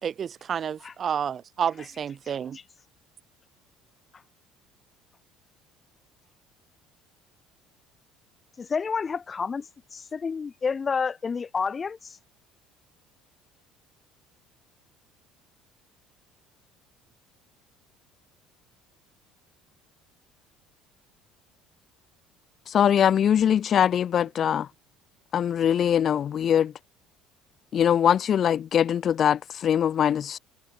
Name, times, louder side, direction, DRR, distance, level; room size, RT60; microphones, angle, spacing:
voice 1, 0.0-2.6, right 8 dB, 40° right, 2.3 m, -30 dB
voice 2, 8.6-9.7 9.9-12.2, left 5 dB, 30° left, 2.4 m, -29 dB
voice 3, 22.7-24.7 25.3-26.7 27.7-30.4, left 9 dB, 45° left, 1.0 m, -22 dB
supercardioid pair, 105°, 0 cm